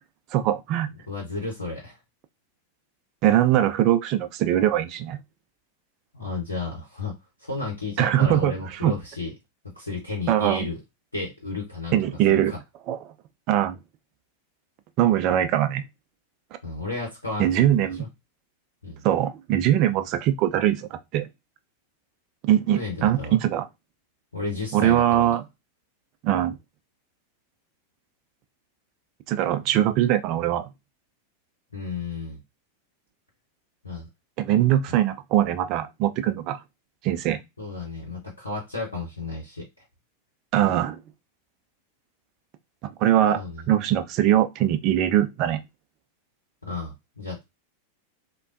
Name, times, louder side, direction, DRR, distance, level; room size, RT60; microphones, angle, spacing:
voice 1, 0.3-0.9 3.2-5.2 8.0-8.9 10.3-10.7 11.9-12.5 12.9-13.0 13.5-13.8 15.0-15.8 17.4-18.1 19.0-21.3 22.4-23.7 24.7-25.4 26.2-26.6 29.3-30.7 34.4-36.6 37.0-37.4 40.5-41.0 43.0-45.6, right 12 dB, 40° right, 0.4 m, -22 dB
voice 2, 1.1-2.0 6.1-7.1 7.4-9.3 9.7-10.8 11.1-12.0 12.3-12.6 16.6-18.1 18.8-19.0 22.7-23.3 24.3-25.3 31.7-32.4 33.8-34.1 34.9-35.0 37.6-39.6 43.3-43.6 46.6-47.4, left 3 dB, 80° left, 0.8 m, -33 dB
3.3 x 2.2 x 2.5 m
figure-of-eight pair, 90°, 0 cm